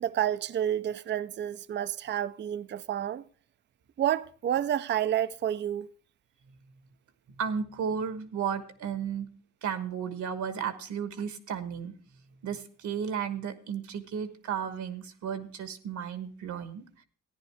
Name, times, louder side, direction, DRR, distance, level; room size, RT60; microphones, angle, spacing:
voice 1, 0.0-3.2 4.0-5.9, right 10 dB, 35° right, 0.5 m, -29 dB
voice 2, 7.4-9.3 9.6-11.9 12.4-16.8, right 7 dB, 75° right, 1.3 m, -34 dB
14.5 x 10.0 x 3.4 m
cardioid pair, 90°, 30 cm